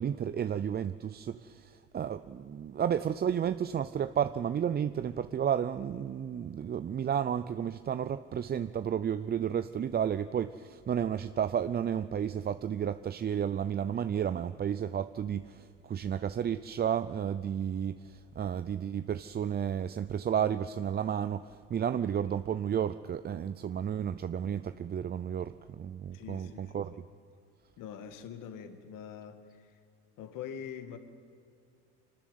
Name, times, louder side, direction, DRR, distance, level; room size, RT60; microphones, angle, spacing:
voice 1, 0.0-26.9, right 8 dB, 25° right, 0.5 m, -32 dB
voice 2, 26.1-26.8 27.8-29.8 30.2-31.0, left 8 dB, 60° left, 2.1 m, -44 dB
24.5 x 13.0 x 9.5 m
hypercardioid pair, 80°, 36 cm